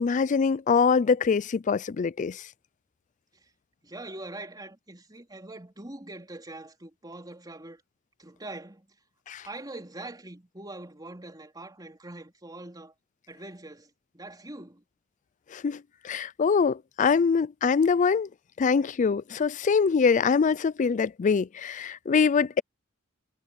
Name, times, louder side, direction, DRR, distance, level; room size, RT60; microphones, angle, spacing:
voice 1, 0.0-2.4 9.3-9.4 15.5-18.3 18.6-22.6, left 5 dB, 35° left, 0.4 m, -24 dB
voice 2, 3.8-7.8 8.2-8.9 9.4-12.9 13.3-14.8, right 2 dB, 20° right, 3.9 m, -43 dB
head